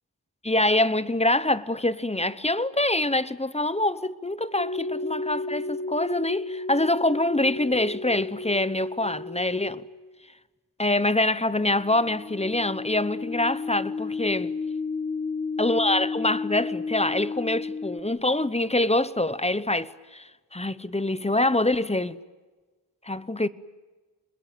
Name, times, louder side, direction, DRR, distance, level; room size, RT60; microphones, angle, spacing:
voice 1, 0.4-9.8 10.8-14.5 15.6-22.2 23.1-23.5, left 2 dB, 15° left, 0.9 m, -25 dB
sound 1, 4.6-10.1 11.6-18.0, left 4 dB, 35° left, 2.7 m, -33 dB
26.5 x 21.5 x 9.2 m
wide cardioid pair, 90°, 41 cm